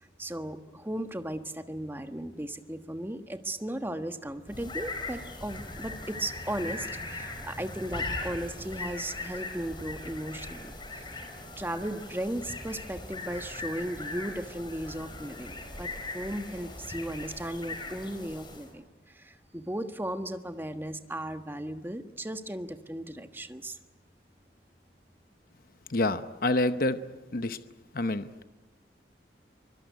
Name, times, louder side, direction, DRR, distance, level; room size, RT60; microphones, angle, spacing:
voice 1, 0.0-10.7 11.6-15.9 16.1-23.8, right 1 dB, 10° right, 8 dB, 1.3 m, -36 dB
sound 1, 4.5-18.8, left 2 dB, 25° left, 4.9 m, -39 dB
voice 2, 25.9-27.0 27.3-27.6 27.9-28.3, left 2 dB, 55° left, 11 dB, 0.9 m, -27 dB
24.5 x 21.5 x 9.4 m, 1.1 s
head